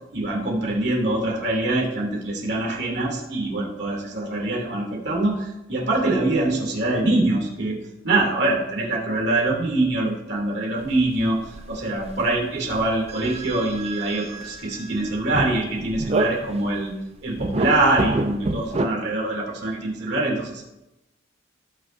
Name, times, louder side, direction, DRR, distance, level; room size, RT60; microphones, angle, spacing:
voice 1, 0.1-11.4 11.7-16.9 17.2-20.6, right 2 dB, 60° right, -2 dB, 2.7 m, -24 dB
sound 1, 10.8-12.4 12.7-16.8 17.3-18.9, right 2 dB, 35° right, 0.5 m, -28 dB
18.0 x 6.1 x 2.6 m, 0.94 s
head